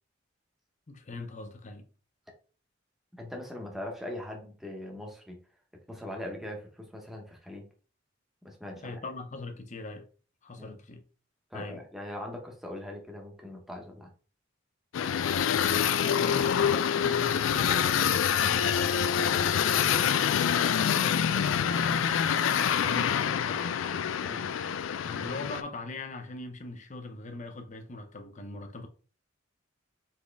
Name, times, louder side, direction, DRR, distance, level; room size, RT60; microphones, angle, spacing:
voice 1, 0.9-1.9 8.8-10.1 10.4-11.0 11.5-11.8 15.4-19.4 19.7-23.7 25.0-28.9, left 2 dB, 40° left, 0.7 m, -41 dB
voice 2, 3.1-5.4 5.9-7.7 8.4-9.0 10.6-10.8 11.5-14.1 18.3-18.6 24.2-24.5, left 1 dB, ahead, 1.0 m, -41 dB
sound 1, 14.9-25.6, left 8 dB, 80° left, 0.3 m, -26 dB
4.3 x 3.6 x 3.4 m
head